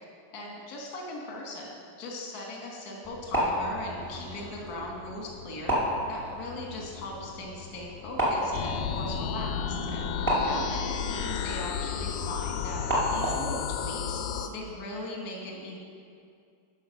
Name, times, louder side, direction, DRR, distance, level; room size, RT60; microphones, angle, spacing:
voice 1, 0.3-5.7 6.1-14.2 14.5-15.8, left 2 dB, 55° left, -1 dB, 1.0 m, -39 dB
sound 1, 3.0-13.6, equal, 10° right, 0.8 m, -33 dB
sound 2, 8.5-14.5, left 7 dB, 90° left, 2.3 m, -32 dB
11.5 x 4.8 x 6.3 m, 2.4 s
omnidirectional pair, 3.9 m